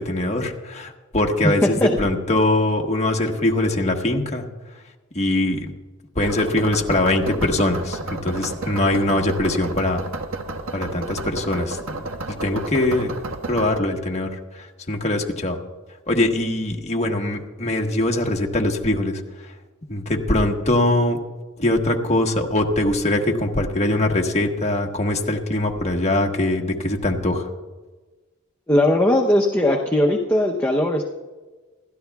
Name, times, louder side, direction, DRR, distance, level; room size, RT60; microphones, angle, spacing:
voice 1, 0.0-4.4 5.1-5.7 6.2-10.0 10.7-11.8 12.4-13.1 13.5-14.3 14.9-15.6 16.1-19.2 19.9-21.2 21.6-27.4, left 1 dB, 30° left, 1 dB, 1.3 m, -22 dB
voice 2, 1.4-2.0 28.7-31.0, left 1 dB, 10° left, 0 dB, 0.7 m, -19 dB
sound 1, 6.2-13.8, right 3 dB, 65° right, 1.3 m, -32 dB
27.5 x 12.5 x 2.3 m, 1.3 s
head